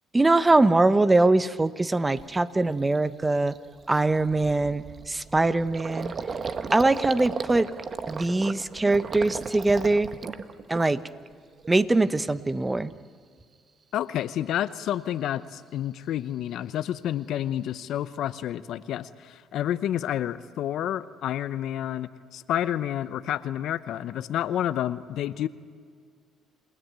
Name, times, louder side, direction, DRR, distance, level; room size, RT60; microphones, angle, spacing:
voice 1, 0.1-3.5 3.9-6.1 6.7-7.7 8.1-10.1 10.7-11.0 11.7-12.9, right 2 dB, 20° right, 13 dB, 1.1 m, -22 dB
Gurgling, 1.6-1.7 2.2-2.4 2.8-3.0 3.2-11.3 11.6-12.2, right 5 dB, 45° right, 1.3 m, -36 dB
voice 2, 13.9-25.5, left 11 dB, 70° left, 13 dB, 0.8 m, -29 dB
28.5 x 17.5 x 9.2 m, 2.1 s
supercardioid pair, 70°, 0 cm